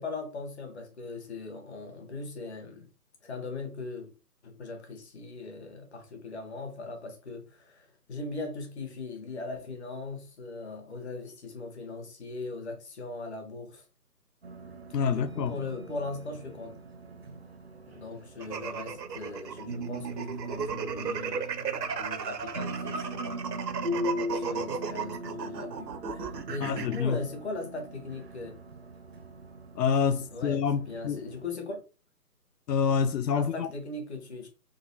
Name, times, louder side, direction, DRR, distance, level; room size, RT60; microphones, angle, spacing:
voice 1, 0.0-2.9 3.2-4.1 4.4-13.8 15.1-16.7 17.9-23.4 24.3-28.5 30.3-31.8 33.3-34.5, left 3 dB, 45° left, 1.3 m, -39 dB
sound 1, 14.4-31.5, equal, 40° right, 0.5 m, -40 dB
voice 2, 14.9-15.6 26.6-27.2 29.8-31.2 32.7-33.7, left 6 dB, 85° left, 0.5 m, -27 dB
sound 2, 18.4-27.0, right 6 dB, 90° right, 0.7 m, -35 dB
3.9 x 3.0 x 2.8 m
figure-of-eight pair, 160°, 48 cm